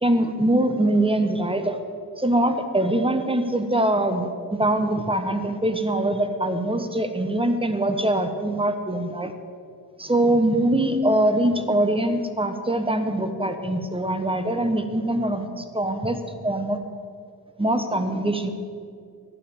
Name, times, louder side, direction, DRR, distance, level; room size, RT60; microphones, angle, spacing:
voice 1, 0.0-1.8 2.2-9.3 10.0-16.2 16.4-16.8 17.6-18.5, right 1 dB, 15° right, 7 dB, 1.1 m, -23 dB
12.0 x 9.4 x 6.9 m, 2.3 s
wide cardioid pair, 70°, 39 cm